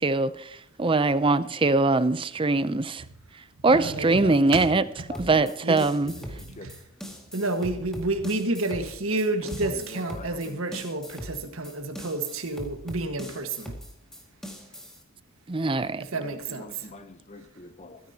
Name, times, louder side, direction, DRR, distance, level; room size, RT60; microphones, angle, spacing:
voice 1, 0.0-3.0 3.6-4.8 5.2-6.1 15.5-16.0, right 3 dB, 25° right, 0.6 m, -22 dB
voice 2, 3.7-4.3 5.6-5.8 6.5-6.7 7.3-13.7 16.0-16.9, right 2 dB, 75° right, 1.7 m, -30 dB
voice 3, 5.1-5.5 6.4-6.7 9.7-10.8 16.1-18.0, left 2 dB, 30° left, 0.8 m, -44 dB
sound 1, 5.1-15.0, equal, ahead, 2.1 m, -41 dB
23.0 x 10.0 x 2.9 m
head